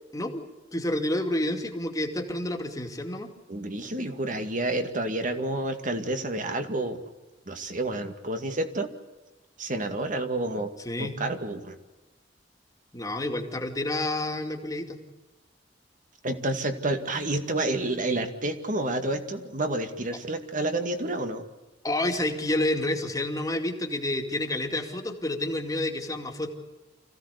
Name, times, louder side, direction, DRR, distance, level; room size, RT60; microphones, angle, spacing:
voice 1, 0.1-0.4 0.7-3.3 10.8-11.2 12.9-15.0 21.8-26.5, left 1 dB, 20° left, 3 dB, 2.5 m, -29 dB
voice 2, 3.5-7.0 7.5-8.9 9.6-10.7 11.0-11.8 16.2-21.5, right 2 dB, 45° right, 7 dB, 2.2 m, -29 dB
26.0 x 16.0 x 8.3 m, 1.1 s
head